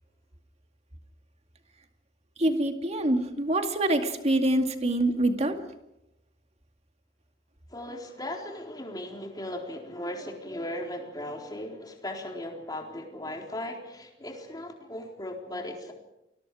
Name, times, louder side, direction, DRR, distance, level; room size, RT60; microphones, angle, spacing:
voice 1, 2.4-5.6, right 1 dB, 40° right, 6 dB, 2.2 m, -25 dB
voice 2, 7.7-15.9, left 1 dB, 25° left, 1 dB, 4.0 m, -37 dB
30.0 x 21.5 x 5.0 m, 0.89 s
head